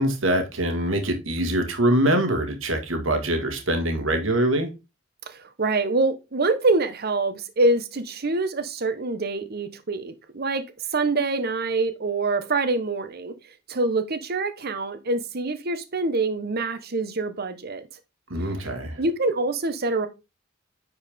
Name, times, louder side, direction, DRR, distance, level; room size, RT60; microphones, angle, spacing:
voice 1, 0.0-4.7 18.3-19.0, right 1 dB, 85° right, 1.7 m, -24 dB
voice 2, 5.3-10.6 10.9-13.3 13.7-17.8 19.0-20.1, right 3 dB, 55° right, 1.0 m, -25 dB
9.9 x 4.7 x 3.6 m
head